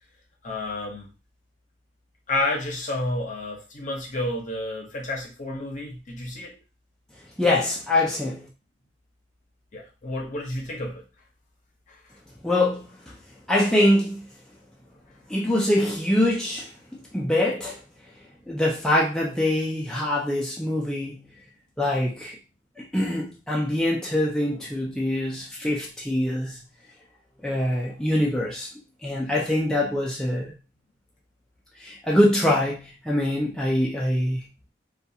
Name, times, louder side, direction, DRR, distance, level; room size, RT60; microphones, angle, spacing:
voice 1, 0.4-1.1 2.3-6.6 9.7-11.0 11.9-12.0, left 2 dB, 45° left, 0 dB, 0.7 m, -30 dB
voice 2, 7.4-8.5 12.4-13.2 13.5-14.3 15.3-16.7 17.1-17.8 18.5-21.3 21.8-22.4 22.8-26.6 27.4-28.7 29.0-30.5 31.8-34.5, left 1 dB, 5° left, -4 dB, 0.4 m, -24 dB
2.4 x 2.3 x 2.7 m, 0.31 s
head